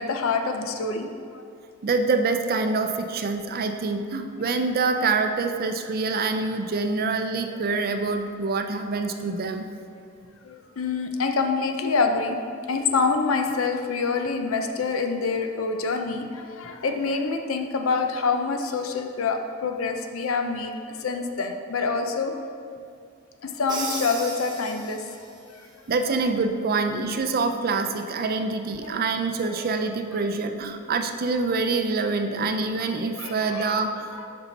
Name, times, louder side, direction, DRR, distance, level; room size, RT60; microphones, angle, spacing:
voice 1, 0.0-1.4 4.5-4.6 9.9-10.0 10.4-12.4 12.7-22.4 23.4-25.0 28.8-29.0 32.9-33.8 34.1-34.3, left 4 dB, 85° left, 5 dB, 0.6 m, -26 dB
voice 2, 1.8-9.7 25.9-34.1, right 3 dB, 45° right, 7 dB, 0.5 m, -26 dB
Crash cymbal, 23.7-25.4, right 3 dB, 20° right, 1.0 m, -35 dB
7.1 x 5.4 x 4.0 m, 2.3 s
head